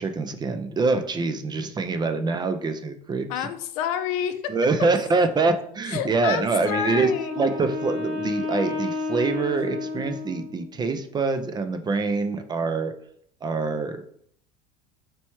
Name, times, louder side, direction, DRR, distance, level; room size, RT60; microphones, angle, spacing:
voice 1, 0.0-3.5 4.5-7.1 7.4-12.9 13.4-14.0, right 3 dB, 20° right, 8 dB, 0.4 m, -25 dB
voice 2, 3.3-4.5 5.9-7.4, left 9 dB, 60° left, 10 dB, 0.5 m, -29 dB
Wind instrument woodwind instrument, 6.5-10.8, left 3 dB, 60° right, 1.7 m, -31 dB
4.5 x 3.1 x 3.0 m, 0.64 s
hypercardioid pair, 75°, 20 cm